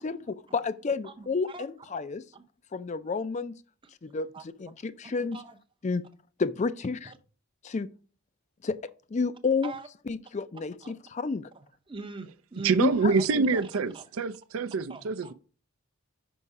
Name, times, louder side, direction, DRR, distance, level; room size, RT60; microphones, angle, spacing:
voice 1, 0.0-2.2 2.7-3.5 4.0-4.3 4.6-5.4 5.8-6.1 6.4-7.1 7.6-7.9 8.6-8.8 9.1-9.7 10.1-11.5 12.8-13.4, left 4 dB, 30° left, 0.3 m, -30 dB
voice 2, 1.0-1.7 2.3-2.4 4.3-4.4 5.0-5.6 7.0-7.2 9.6-9.9 10.8-11.0 11.5-13.3 13.5-13.6 13.9-14.1 14.9-15.3, right 4 dB, 25° right, 0.6 m, -43 dB
voice 3, 12.6-15.3, right 4 dB, 75° right, 0.5 m, -26 dB
5.5 x 5.4 x 4.8 m
head